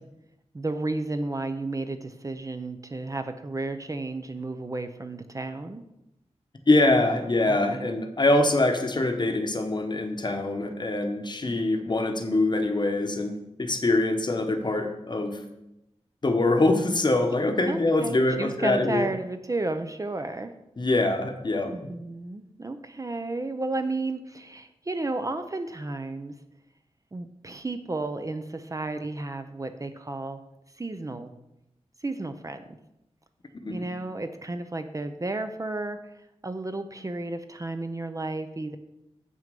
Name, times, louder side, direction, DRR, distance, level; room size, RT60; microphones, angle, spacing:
voice 1, 0.5-5.8 7.5-7.8 17.6-20.5 21.7-26.3 27.1-30.4 30.8-31.3 32.0-32.8 33.7-36.0 36.4-38.8, right 2 dB, 30° right, 8 dB, 0.6 m, -32 dB
voice 2, 6.7-15.4 16.2-19.1 20.8-21.7 33.5-33.8, left 2 dB, 40° left, 6 dB, 1.0 m, -24 dB
7.3 x 6.2 x 5.3 m, 0.88 s
wide cardioid pair, 100°, 12 cm